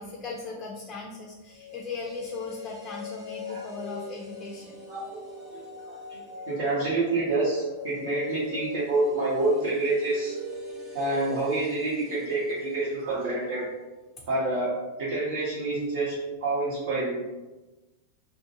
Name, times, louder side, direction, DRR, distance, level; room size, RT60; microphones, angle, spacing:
voice 1, 0.0-4.8, left 3 dB, 25° left, -1 dB, 0.4 m, -38 dB
sound 1, 1.5-13.6 13.9-14.0, left 2 dB, 25° right, 0.9 m, -41 dB
voice 2, 4.9-5.2 5.5-6.2 6.5-10.4 10.9-13.7 14.3-16.2 16.4-17.2, right 2 dB, 65° right, -8 dB, 0.8 m, -28 dB
2.4 x 2.0 x 2.7 m, 1.1 s
hypercardioid pair, 100°, 0 cm